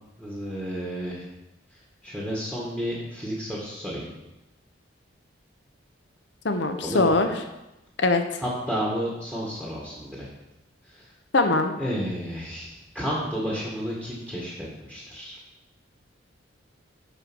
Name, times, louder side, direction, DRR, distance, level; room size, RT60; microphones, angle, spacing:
voice 1, 0.2-1.3 2.0-4.1 6.8-7.2 8.4-10.3 10.8-11.1 11.8-14.5 14.8-15.4, equal, 10° right, -5 dB, 1.8 m, -31 dB
voice 2, 6.4-7.3 8.0-8.2 11.3-11.7, left 2 dB, 65° left, 6 dB, 1.0 m, -21 dB
10.5 x 4.5 x 6.3 m, 0.96 s
head